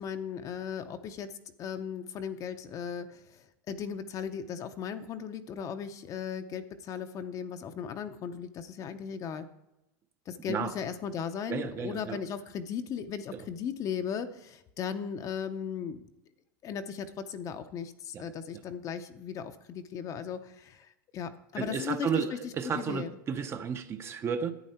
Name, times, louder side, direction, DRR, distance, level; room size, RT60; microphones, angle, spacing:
voice 1, 0.0-1.3 1.6-9.5 10.3-16.1 16.6-22.1 22.7-23.1, left 7 dB, 30° left, 9 dB, 0.7 m, -37 dB
voice 2, 11.5-12.2 18.1-18.2 21.6-24.5, right 6 dB, 25° right, 9 dB, 0.7 m, -32 dB
11.0 x 8.8 x 4.3 m, 0.91 s
supercardioid pair, 140°, 11 cm